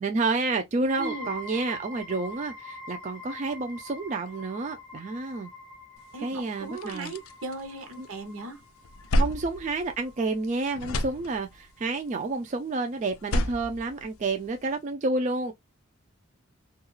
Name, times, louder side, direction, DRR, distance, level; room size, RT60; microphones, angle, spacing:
voice 1, 0.0-5.5 6.2-7.1 8.0-8.1 9.2-15.5, right 3 dB, 35° right, 0.3 m, -30 dB
sound 1, 0.9-12.3, left 2 dB, 5° left, 0.6 m, -45 dB
voice 2, 1.0-1.3 6.1-8.6, right 2 dB, 75° right, 0.7 m, -37 dB
sound 2, 6.1-6.2 6.6-8.2 8.6-10.5 10.7-11.8 13.1-14.7, left 1 dB, 90° left, 0.4 m, -30 dB
2.3 x 2.3 x 2.9 m
head